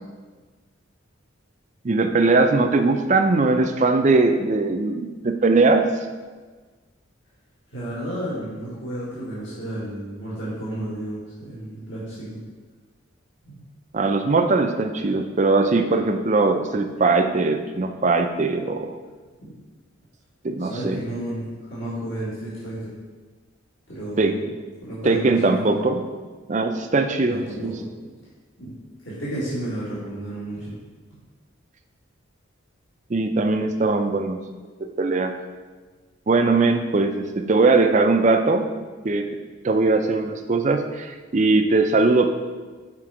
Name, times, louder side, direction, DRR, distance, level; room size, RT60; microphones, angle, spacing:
voice 1, 1.8-5.8 13.9-18.9 20.4-21.0 24.2-24.3 25.0-26.0 26.5-27.7 33.1-34.4 34.8-35.3 36.3-38.7 39.0-39.2 39.6-42.3, right 3 dB, 35° right, 6 dB, 0.4 m, -20 dB
voice 2, 7.7-12.4 13.5-13.6 19.4-19.5 20.6-22.9 23.9-24.4 24.8-25.9 27.2-27.8 28.6-28.7 29.0-30.7, right 1 dB, 65° left, -9 dB, 1.8 m, -32 dB
6.0 x 4.5 x 4.9 m, 1.4 s
head